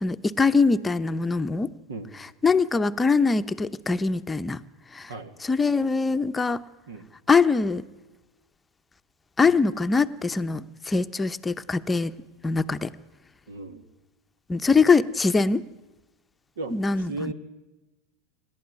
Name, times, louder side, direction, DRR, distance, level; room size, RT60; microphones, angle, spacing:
voice 1, 0.0-1.7 2.4-4.6 4.9-5.1 5.5-6.6 7.3-7.8 9.4-12.1 12.4-12.9 14.5-15.6 16.7-17.3, left 4 dB, 15° left, 9 dB, 0.8 m, -23 dB
voice 2, 13.5-13.9 16.6-17.3, right 2 dB, 80° right, 12 dB, 2.1 m, -36 dB
27.5 x 12.0 x 9.6 m, 1.1 s
hypercardioid pair, 95°, 0 cm